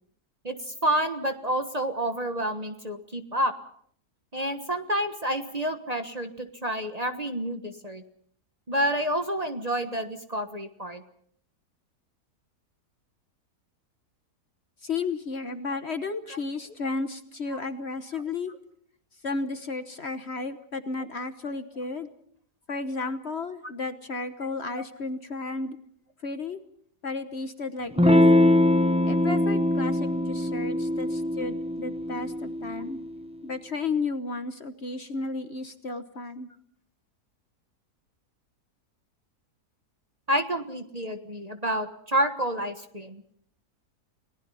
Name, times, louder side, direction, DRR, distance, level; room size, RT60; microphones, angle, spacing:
voice 1, 0.4-3.5 4.3-8.0 8.7-11.0 16.3-16.4 24.8-24.9 40.3-43.2, right 1 dB, 25° right, 7 dB, 1.3 m, -29 dB
voice 2, 14.8-18.5 19.2-22.1 22.7-25.8 26.2-26.6 27.0-28.6 29.0-33.0 33.4-36.5, left 3 dB, 45° left, 9 dB, 1.3 m, -33 dB
Electric guitar / Strum, 28.0-33.1, left 1 dB, 5° right, 0.7 m, -22 dB
30.0 x 19.0 x 5.6 m, 0.63 s
omnidirectional pair, 1.7 m